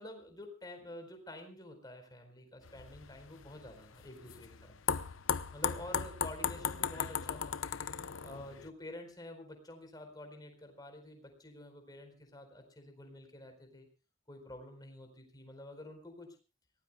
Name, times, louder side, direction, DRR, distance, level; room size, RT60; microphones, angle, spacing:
voice 1, 0.0-4.7 5.5-7.6 8.2-13.9 14.3-16.3, left 1 dB, 20° left, 5 dB, 4.4 m, -49 dB
sound 1, 2.7-8.7, left 7 dB, 90° left, 0.8 m, -37 dB
26.0 x 18.0 x 2.3 m, 0.33 s
head